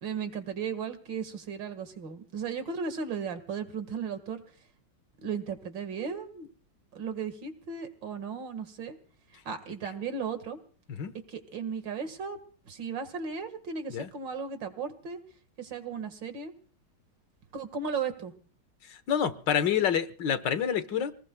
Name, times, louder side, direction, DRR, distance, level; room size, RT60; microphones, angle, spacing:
voice 1, 0.0-4.4 5.2-6.5 6.9-9.0 9.5-10.6 11.3-12.4 12.6-15.2 15.6-16.5 17.5-18.3, right 6 dB, 90° right, 9 dB, 2.5 m, -35 dB
voice 2, 18.9-21.1, left 8 dB, 75° left, 12 dB, 1.9 m, -28 dB
28.0 x 19.5 x 2.3 m, 0.42 s
omnidirectional pair, 2.0 m